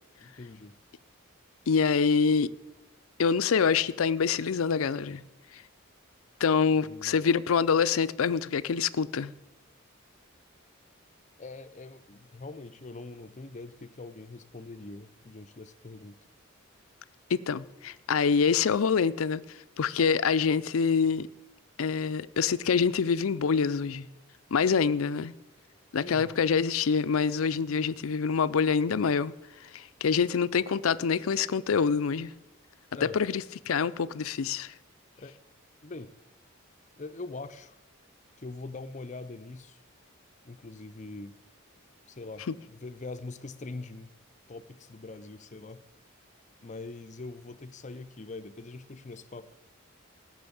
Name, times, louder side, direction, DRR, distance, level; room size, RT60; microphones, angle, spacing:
voice 1, 0.2-0.8 6.8-7.2 11.4-16.3 26.0-26.3 32.9-33.2 35.2-35.4 35.8-36.1 37.0-37.8 38.4-39.8 40.4-41.4 42.1-44.1 44.5-45.8 46.6-49.5, left 3 dB, 35° left, 0.6 m, -43 dB
voice 2, 1.7-2.5 3.2-5.2 6.4-9.3 17.3-19.4 19.8-21.3 21.8-24.1 24.5-25.3 25.9-29.3 29.7-32.3 33.0-34.7, left 6 dB, 85° left, 0.5 m, -26 dB
15.5 x 6.2 x 8.5 m
head